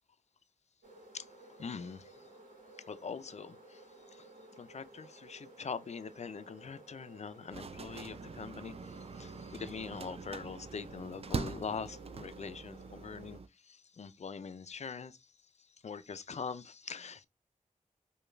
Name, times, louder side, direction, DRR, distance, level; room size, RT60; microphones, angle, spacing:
sound 1, 0.8-13.4, right 1 dB, 80° right, 1.1 m, -56 dB
voice 1, 1.1-2.3 2.9-15.3 15.6-17.3, left 5 dB, 55° left, 0.4 m, -43 dB
sound 2, 7.5-13.5, right 5 dB, 45° right, 0.3 m, -43 dB
5.0 x 2.3 x 2.2 m
cardioid pair, 45°, 14 cm